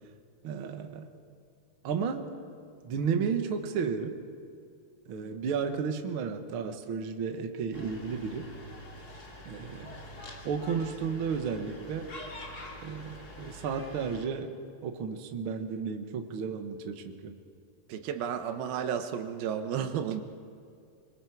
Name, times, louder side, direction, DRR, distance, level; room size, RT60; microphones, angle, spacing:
voice 1, 0.4-1.1 1.8-2.3 2.8-4.2 5.1-8.5 9.4-10.0 10.4-12.1 12.8-14.5 14.8-17.3, right 6 dB, 55° right, 5 dB, 1.5 m, -33 dB
sound 1, 7.7-14.3, left 1 dB, 30° left, 2.3 m, -46 dB
voice 2, 17.9-20.2, right 8 dB, 90° right, 7 dB, 3.0 m, -32 dB
26.0 x 22.5 x 4.7 m, 2.3 s
omnidirectional pair, 4.1 m